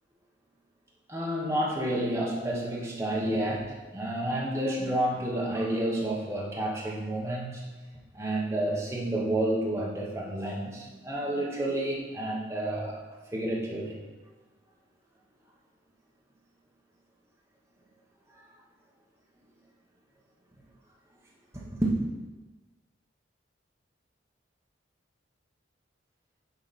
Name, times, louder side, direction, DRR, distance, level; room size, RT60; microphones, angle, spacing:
voice 1, 1.1-7.7 8.1-13.0 13.3-14.0 21.5-21.9, right 1 dB, 15° right, -4 dB, 1.1 m, -30 dB
8.2 x 4.8 x 4.2 m, 1.2 s
head